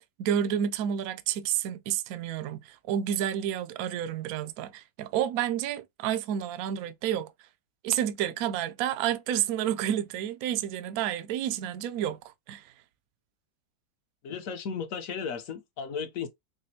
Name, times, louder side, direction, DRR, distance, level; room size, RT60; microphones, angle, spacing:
voice 1, 0.2-7.3 7.8-12.2 12.5-12.7, right 10 dB, 75° right, 0.8 m, -30 dB
voice 2, 14.2-16.3, left 6 dB, 60° left, 0.9 m, -35 dB
5.2 x 2.1 x 2.7 m
omnidirectional pair, 2.0 m